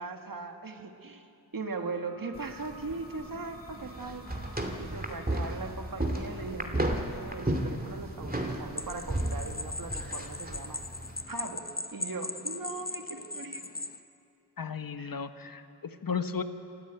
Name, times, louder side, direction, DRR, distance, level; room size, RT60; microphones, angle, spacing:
voice 1, 0.0-4.2 4.8-10.8 11.3-13.6 15.0-15.2, right 3 dB, 55° right, 5 dB, 1.8 m, -39 dB
sound 1, 1.6-12.9, equal, 5° left, 7.1 m, -54 dB
sound 2, 2.3-11.2, right 1 dB, 20° right, 2.6 m, -34 dB
sound 3, 8.8-14.0, left 2 dB, 20° left, 1.0 m, -39 dB
voice 2, 14.6-16.4, left 6 dB, 55° left, 9 dB, 1.2 m, -34 dB
26.0 x 14.0 x 9.0 m, 2.6 s
wide cardioid pair, 55°, 42 cm